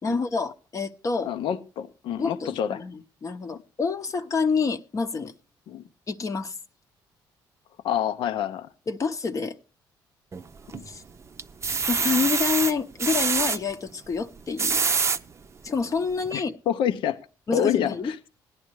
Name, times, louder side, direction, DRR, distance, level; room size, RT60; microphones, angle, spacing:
voice 1, 0.0-1.3 2.2-5.3 6.1-6.6 8.9-9.5 10.9-11.0 11.9-14.9 15.6-16.6 17.5-18.3, left 5 dB, 40° left, 0.8 m, -28 dB
voice 2, 1.3-2.8 5.7-5.8 7.8-8.7 10.7-10.9 16.3-17.2 17.5-18.3, left 9 dB, 80° left, 0.8 m, -27 dB
sound 1, 10.3-10.9 11.4-13.6 14.4-15.2 15.8-15.9 16.2-16.3, right 5 dB, 35° right, 0.6 m, -25 dB
17.0 x 10.5 x 3.1 m
cardioid pair, 85°, 9 cm